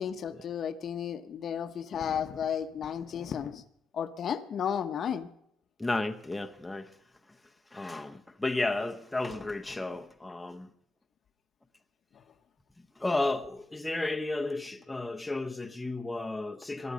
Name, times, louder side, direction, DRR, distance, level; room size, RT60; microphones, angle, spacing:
voice 1, 0.0-3.6 3.9-5.3, left 8 dB, 45° left, 0.9 m, -33 dB
voice 2, 5.8-6.9 7.7-10.7 13.0-16.9, left 2 dB, 10° left, 0.8 m, -33 dB
19.5 x 12.0 x 5.1 m
cardioid pair, 125°, 0 cm